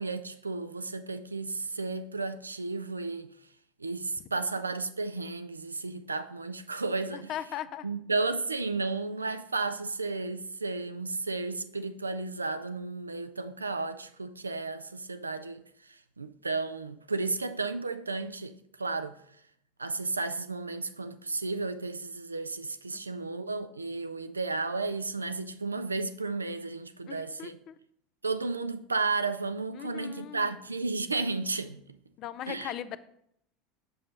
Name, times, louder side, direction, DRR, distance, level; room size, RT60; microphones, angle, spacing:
voice 1, 0.0-3.3 3.8-7.3 7.8-19.2 19.8-27.6 28.2-31.8 32.5-32.7, right 3 dB, 85° right, 0.4 m, -33 dB
voice 2, 7.1-7.9 22.9-23.0 27.1-27.7 29.7-30.6 32.2-33.0, left 10 dB, 45° left, 0.5 m, -39 dB
7.7 x 6.3 x 4.0 m
figure-of-eight pair, 75°, 0 cm